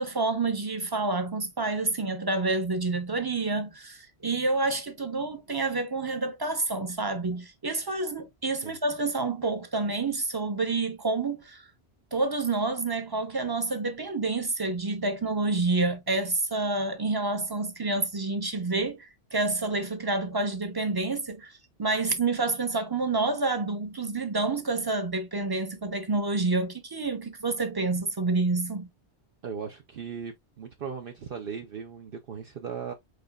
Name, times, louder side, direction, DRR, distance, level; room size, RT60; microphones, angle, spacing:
voice 1, 0.0-11.7 12.1-28.9, right 3 dB, 25° right, 0.8 m, -28 dB
voice 2, 29.4-32.9, right 6 dB, 55° right, 0.8 m, -38 dB
5.1 x 3.9 x 2.3 m
omnidirectional pair, 1.2 m